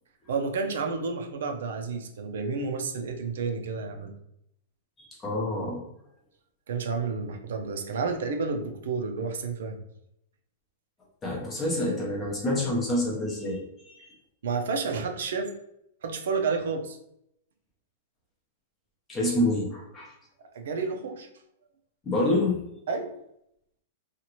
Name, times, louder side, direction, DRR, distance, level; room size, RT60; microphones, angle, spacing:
voice 1, 0.3-4.1 6.7-9.8 14.4-15.5 16.0-17.0 20.5-21.2 22.9-23.1, right 4 dB, 70° right, 4 dB, 0.5 m, -30 dB
voice 2, 5.0-5.8 11.2-14.2 19.1-20.1 22.0-22.6, left 1 dB, 10° left, -1 dB, 0.6 m, -27 dB
2.8 x 2.4 x 3.0 m, 0.77 s
supercardioid pair, 180°, 0 cm